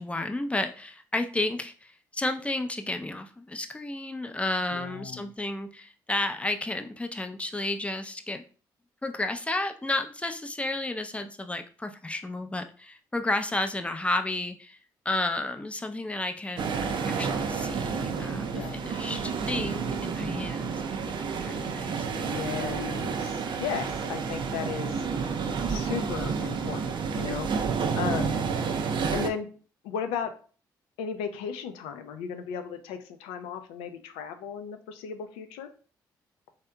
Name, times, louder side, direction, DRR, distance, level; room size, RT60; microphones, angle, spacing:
voice 1, 0.0-8.4 9.0-14.8 15.0-20.8 21.1-22.1, left 2 dB, 15° left, 7 dB, 0.5 m, -32 dB
voice 2, 4.7-5.3 18.5-18.8 22.0-25.1 25.7-28.4 29.1-29.5 29.8-30.3 31.0-35.7, left 7 dB, 85° left, 8 dB, 0.4 m, -35 dB
sound 1, 16.6-29.3, right 5 dB, 55° right, 0.4 m, -30 dB
3.5 x 2.7 x 2.2 m, 0.40 s
hypercardioid pair, 50°, 9 cm